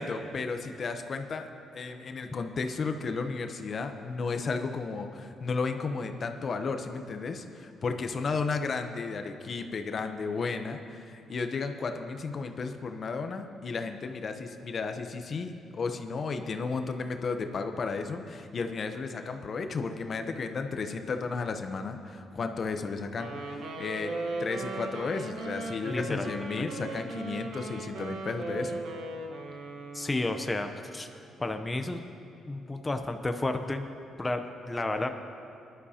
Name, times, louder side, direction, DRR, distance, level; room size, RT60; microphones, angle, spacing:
voice 1, 0.0-24.1 24.4-28.8, left 4 dB, 45° left, 7 dB, 0.7 m, -33 dB
Wind instrument woodwind instrument, 23.2-30.6, right 2 dB, 80° right, 1.2 m, -38 dB
voice 2, 25.8-26.3 26.6-26.7 29.9-31.1 31.4-32.0 32.5-33.9 34.2-35.1, left 2 dB, 15° left, 6 dB, 0.7 m, -31 dB
19.5 x 11.5 x 2.8 m, 2.5 s
cardioid pair, 90°, 0 cm